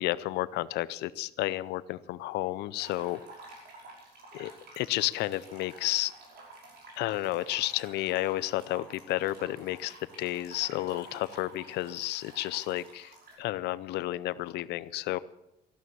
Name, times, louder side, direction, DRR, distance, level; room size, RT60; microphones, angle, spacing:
voice 1, 0.0-3.2 4.4-6.1 7.0-15.2, left 16 dB, 80° left, 18 dB, 0.6 m, -32 dB
sound 1, 2.8-13.3, right 2 dB, 65° right, 5.4 m, -50 dB
13.5 x 13.0 x 6.9 m, 0.87 s
cardioid pair, 110°, 17 cm